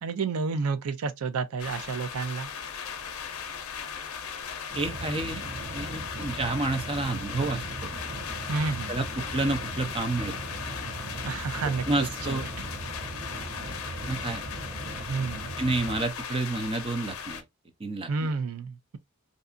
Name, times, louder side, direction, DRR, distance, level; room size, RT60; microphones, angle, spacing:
voice 1, 0.0-2.5 8.5-9.0 11.2-12.6 15.1-15.5 18.1-19.0, right 4 dB, 90° right, 0.5 m, -30 dB
sound 1, 1.6-17.4, left 7 dB, 75° left, 0.5 m, -38 dB
voice 2, 4.7-5.4 5.7-7.9 8.9-10.3 11.9-12.4 14.1-14.4 15.6-17.4 17.8-18.3, right 2 dB, 25° right, 0.5 m, -29 dB
sound 2, 4.7-16.0, right 2 dB, 45° right, 0.9 m, -39 dB
2.6 x 2.3 x 2.4 m
head